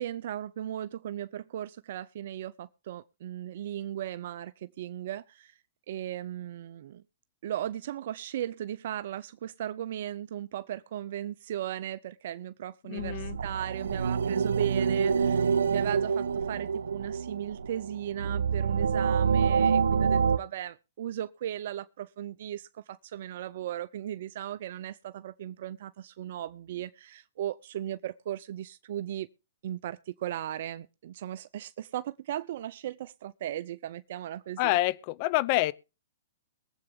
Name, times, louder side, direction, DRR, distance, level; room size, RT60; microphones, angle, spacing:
voice 1, 0.0-5.6 5.9-7.0 7.4-29.3 29.6-34.8, right 11 dB, 60° right, 0.6 m, -37 dB
voice 2, 12.9-13.4 34.6-35.7, left 18 dB, 40° left, 0.8 m, -27 dB
Sad or Happy Movie Scene, 13.0-20.4, right 6 dB, 85° right, 0.9 m, -27 dB
22.5 x 8.0 x 3.6 m
hypercardioid pair, 135°, 0 cm